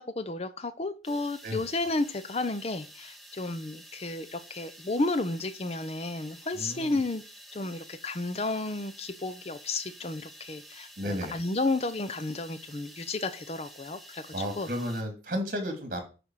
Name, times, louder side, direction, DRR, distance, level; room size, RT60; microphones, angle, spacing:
voice 1, 0.0-7.2 7.5-14.7, left 2 dB, 35° left, 12 dB, 0.6 m, -32 dB
sound 1, 1.0-15.0, equal, ahead, 1.0 m, -50 dB
voice 2, 6.5-7.0 11.0-11.3 14.3-16.0, equal, 50° right, 5 dB, 2.4 m, -33 dB
9.5 x 3.5 x 6.2 m, 0.33 s
head